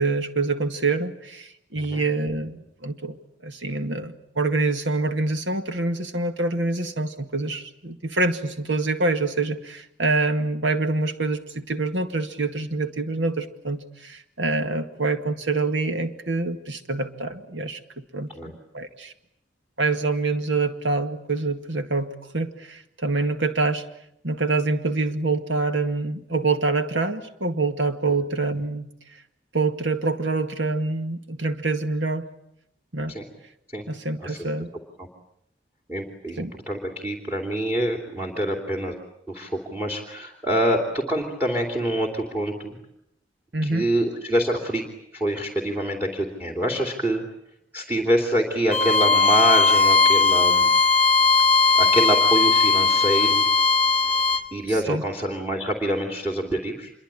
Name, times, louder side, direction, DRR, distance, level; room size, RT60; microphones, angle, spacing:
voice 1, 0.0-3.2 3.4-18.3 18.7-19.1 19.8-23.8 24.2-28.9 29.5-32.3 32.9-33.1 33.9-34.7 36.4-36.5 43.5-43.9 54.7-55.0, right 3 dB, 75° right, 7 dB, 2.1 m, -26 dB
voice 2, 35.9-38.9 39.3-42.8 43.7-44.8 45.1-47.2 47.7-50.7 51.8-53.4 54.5-56.9, right 1 dB, 10° right, 2 dB, 2.9 m, -26 dB
Bowed string instrument, 48.7-54.5, left 4 dB, 5° left, 1.3 m, -18 dB
26.5 x 23.5 x 8.9 m, 0.76 s
head